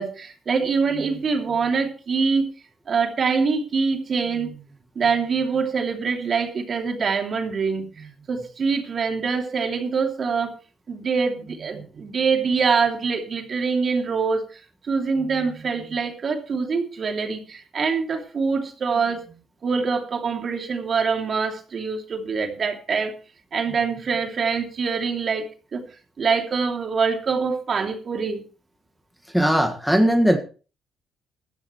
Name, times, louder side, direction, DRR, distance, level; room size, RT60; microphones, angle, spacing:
voice 1, 0.0-2.5 2.9-4.7 4.9-10.5 10.9-19.3 19.6-23.1 23.5-25.5 25.7-25.9 26.2-28.4, right 5 dB, 50° right, 4 dB, 2.9 m, -24 dB
voice 2, 29.3-30.4, equal, ahead, 5 dB, 1.7 m, -19 dB
18.0 x 12.5 x 3.2 m, 0.36 s
cardioid pair, 90°, 0 cm